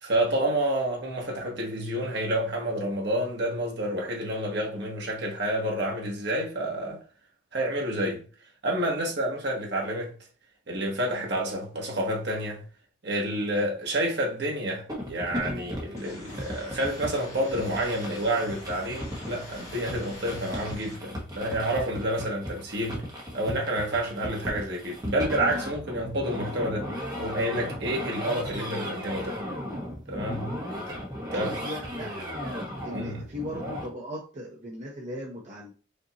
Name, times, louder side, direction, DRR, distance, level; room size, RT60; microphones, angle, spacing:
voice 1, 0.0-7.0 7.5-8.2 8.6-10.1 10.7-12.6 13.0-23.0 23.3-26.9 27.2-29.4 30.1-30.5 31.3-31.5 32.9-33.2, right 1 dB, 60° right, 1.3 m, -29 dB
sound 1, 14.9-33.9, equal, 20° right, 1.1 m, -36 dB
sound 2, 16.0-21.0, left 2 dB, 35° left, 1.6 m, -45 dB
voice 2, 31.3-32.1 32.8-35.7, left 1 dB, 40° right, 0.8 m, -37 dB
5.1 x 2.7 x 2.9 m
head